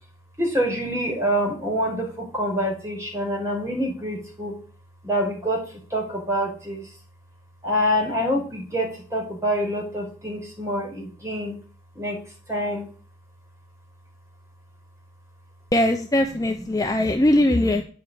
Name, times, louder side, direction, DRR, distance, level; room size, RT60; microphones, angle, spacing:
voice 1, 0.4-4.5 5.0-6.8 7.6-11.6 11.9-12.2 12.5-12.9 16.8-17.2, equal, 15° right, 0 dB, 5.0 m, -26 dB
voice 2, 15.7-17.8, left 1 dB, 20° left, 4 dB, 0.8 m, -20 dB
9.3 x 6.7 x 8.4 m, 0.40 s
head